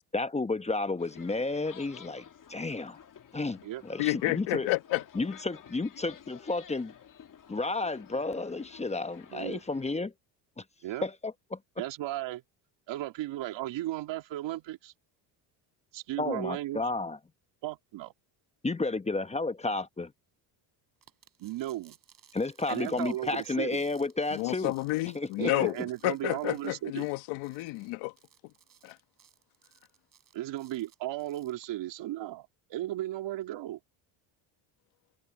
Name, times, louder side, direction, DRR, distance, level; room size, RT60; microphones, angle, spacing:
voice 1, 0.1-2.2 2.5-3.0 3.3-4.7 5.1-6.9 7.5-10.1 10.6-10.7 11.0-11.6 16.2-17.2 18.6-20.1 22.3-24.7 25.1-25.7, left 3 dB, 15° left, 0.9 m, -32 dB
sound 1, 1.0-9.9, left 8 dB, 40° left, 2.1 m, -52 dB
voice 2, 4.0-5.0 24.3-25.8 26.0-28.1 28.8-29.0, left 20 dB, 80° left, 1.4 m, -30 dB
voice 3, 9.3-9.6 10.8-11.1 11.8-12.4 12.9-14.9 15.9-16.9 17.6-18.1 21.4-22.0 22.7-23.8 25.4-27.1 30.3-33.8, right 14 dB, 70° right, 2.7 m, -35 dB
sound 2, 21.0-31.7, right 8 dB, 45° right, 7.7 m, -62 dB
supercardioid pair, 90°, 46 cm